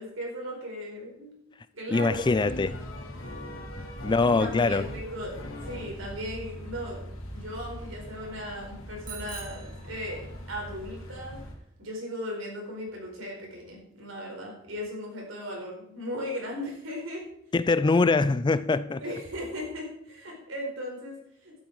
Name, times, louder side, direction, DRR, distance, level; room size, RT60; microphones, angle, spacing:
voice 1, 0.0-1.4 1.7-2.2 4.2-7.0 7.3-11.4 11.8-17.2 19.0-21.6, equal, 80° right, 4.7 m, -37 dB
voice 2, 1.9-2.8 4.0-4.9 17.5-19.0, left 3 dB, 25° left, 0.4 m, -23 dB
sound 1, 2.1-11.5, equal, 85° left, 2.5 m, -40 dB
Bicycle bell, 9.0-10.6, right 8 dB, 45° right, 1.6 m, -45 dB
12.0 x 10.0 x 4.8 m
head